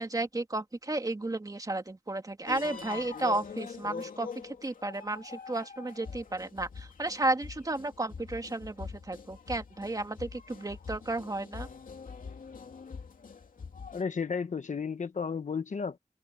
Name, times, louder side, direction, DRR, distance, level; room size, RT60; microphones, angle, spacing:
voice 1, 0.0-11.7, right 2 dB, 25° right, 2.5 m, -33 dB
sound 1, 2.5-14.0, left 5 dB, 80° left, 2.6 m, -44 dB
voice 2, 13.9-16.0, left 5 dB, 60° left, 1.2 m, -33 dB
open air
wide cardioid pair, 110°, 14 cm